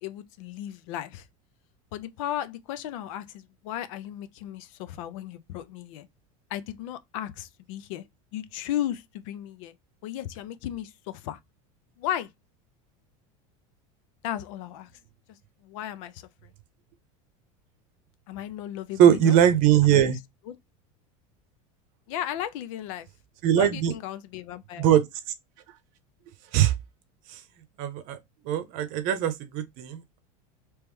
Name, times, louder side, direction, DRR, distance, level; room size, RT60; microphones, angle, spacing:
voice 1, 0.0-1.3 1.9-6.1 6.5-8.0 8.3-9.7 10.0-11.4 12.0-12.3 14.2-14.9 15.6-16.3 18.3-19.4 19.8-20.1 20.5-20.6 22.1-23.1 23.6-24.9, left 12 dB, 70° left, 0.6 m, -35 dB
voice 2, 19.0-20.2 23.4-23.9 24.8-25.0 26.5-26.7 27.8-28.2 28.5-30.2, right 10 dB, 50° right, 0.7 m, -21 dB
3.2 x 3.0 x 3.4 m
supercardioid pair, 160°, 17 cm